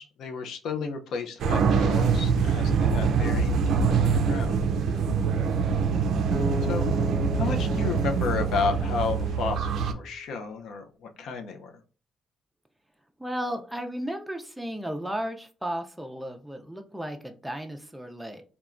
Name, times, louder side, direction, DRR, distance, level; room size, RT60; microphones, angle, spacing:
voice 1, 0.0-4.6 6.6-6.9 7.3-11.7, left 5 dB, 75° left, 0.5 m, -32 dB
sound 1, 1.4-9.9, right 5 dB, 70° right, 0.3 m, -24 dB
Acoustic guitar, 6.3-9.5, left 1 dB, 45° right, 0.8 m, -36 dB
voice 2, 13.2-18.4, equal, 5° right, 0.4 m, -34 dB
3.1 x 2.2 x 2.4 m
cardioid pair, 90°, 0 cm